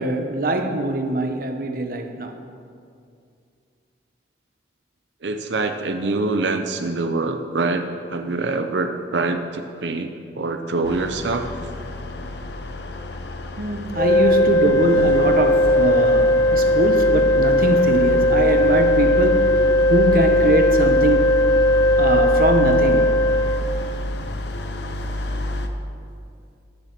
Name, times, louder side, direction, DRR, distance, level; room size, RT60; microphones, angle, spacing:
voice 1, 0.0-2.3 13.6-19.6 19.9-21.3 22.0-23.1, right 1 dB, 55° right, 0.9 m, -22 dB
voice 2, 5.2-11.4 14.4-14.5, right 3 dB, 85° right, 0.7 m, -25 dB
sound 1, 10.8-25.7, left 1 dB, 75° left, 0.9 m, -28 dB
sound 2, 13.9-23.6, left 1 dB, 25° left, 0.5 m, -18 dB
15.5 x 6.9 x 6.0 m
head